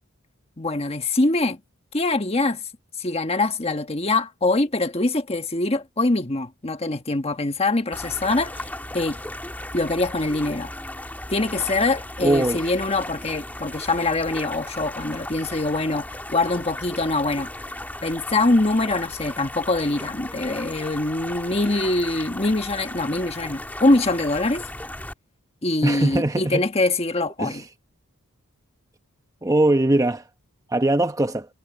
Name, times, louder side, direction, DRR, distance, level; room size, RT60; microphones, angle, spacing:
voice 1, 0.6-1.6 1.9-2.6 3.0-8.7 8.9-9.2 9.7-10.7 11.3-17.5 18.0-24.6 25.6-27.6, left 2 dB, 30° left, 1.4 m, -23 dB
sound 1, 7.9-25.1, left 1 dB, 10° left, 1.9 m, -36 dB
voice 2, 12.2-12.6 25.8-26.6 27.4-27.6 29.4-30.2 30.7-31.5, right 1 dB, 15° right, 0.9 m, -21 dB
head